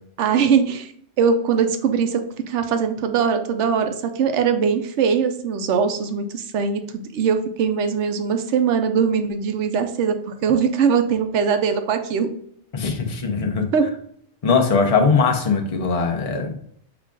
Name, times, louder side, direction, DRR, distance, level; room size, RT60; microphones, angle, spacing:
voice 1, 0.2-0.9 1.2-2.2 2.5-10.2 10.4-12.3 13.7-13.9, right 6 dB, 70° right, 7 dB, 0.9 m, -21 dB
voice 2, 12.7-13.7 14.4-16.6, left 4 dB, 35° left, 2 dB, 0.6 m, -20 dB
5.8 x 2.4 x 3.7 m, 0.65 s
omnidirectional pair, 1.3 m